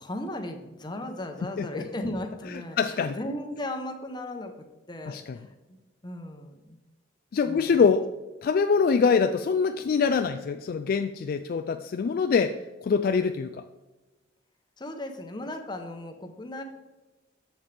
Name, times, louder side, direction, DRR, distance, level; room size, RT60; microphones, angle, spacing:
voice 1, 0.0-5.8 6.0-6.8 7.4-7.9 14.8-16.6, left 1 dB, 25° left, 5 dB, 0.9 m, -36 dB
voice 2, 2.8-3.2 5.1-5.2 7.3-8.1 8.4-13.6, left 5 dB, 50° left, 8 dB, 0.3 m, -24 dB
7.3 x 7.2 x 3.4 m, 1.1 s
head